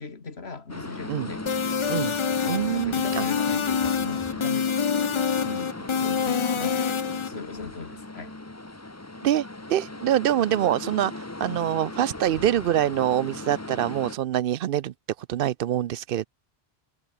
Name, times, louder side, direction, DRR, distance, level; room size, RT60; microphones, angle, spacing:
voice 1, 0.0-1.5 2.4-4.7 5.4-8.3 11.5-11.6, left 4 dB, 85° left, 2.3 m, -39 dB
sound 1, 0.7-14.2, left 2 dB, 15° left, 1.1 m, -37 dB
sound 2, 1.5-7.3, left 7 dB, 40° left, 0.5 m, -26 dB
voice 2, 2.5-3.3 9.2-16.3, right 11 dB, 65° right, 0.7 m, -25 dB
omnidirectional pair, 1.0 m